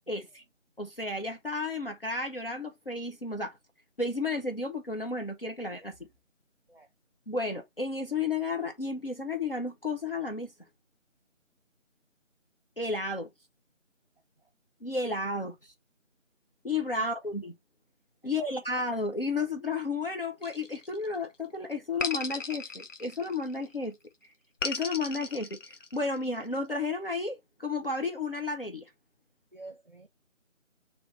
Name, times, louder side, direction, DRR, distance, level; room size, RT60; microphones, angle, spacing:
voice 1, 0.1-0.4 0.8-3.6 4.0-5.9 7.3-10.5 12.8-13.3 14.8-15.6 16.6-17.5 18.2-23.9 24.6-28.8, left 3 dB, 45° left, 0.6 m, -32 dB
sound 1, 20.4-21.3 22.0-23.7 24.6-26.3, left 4 dB, 70° left, 0.9 m, -36 dB
voice 2, 29.5-30.1, right 2 dB, 45° right, 0.7 m, -49 dB
3.2 x 3.0 x 4.5 m
figure-of-eight pair, 165°, 39 cm